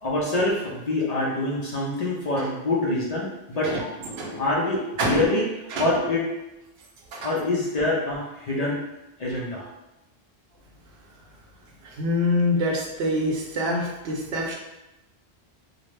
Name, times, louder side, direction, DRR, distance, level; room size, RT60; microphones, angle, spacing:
voice 1, 0.0-3.7 4.3-5.4 5.8-6.2 7.2-8.8 9.2-9.7, left 2 dB, 50° left, -4 dB, 0.5 m, -25 dB
voice 2, 3.6-4.4 5.0-5.3 5.7-5.9 7.1-7.3 11.8-14.6, left 1 dB, 75° right, -1 dB, 0.8 m, -26 dB
2.5 x 2.0 x 3.1 m, 0.97 s
omnidirectional pair, 1.1 m